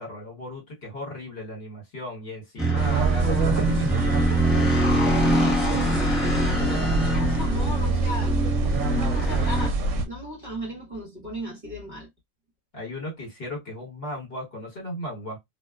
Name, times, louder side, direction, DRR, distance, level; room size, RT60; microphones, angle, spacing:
voice 1, 0.0-4.8 12.7-15.4, left 1 dB, 50° left, 1.4 m, -36 dB
sound 1, 2.6-9.7, right 2 dB, ahead, 0.6 m, -24 dB
sound 2, 2.8-10.1, right 1 dB, 70° right, 0.9 m, -26 dB
voice 2, 5.5-8.4 8.7-9.8 10.0-12.1, equal, 40° right, 1.0 m, -36 dB
2.5 x 2.1 x 2.3 m
omnidirectional pair, 1.4 m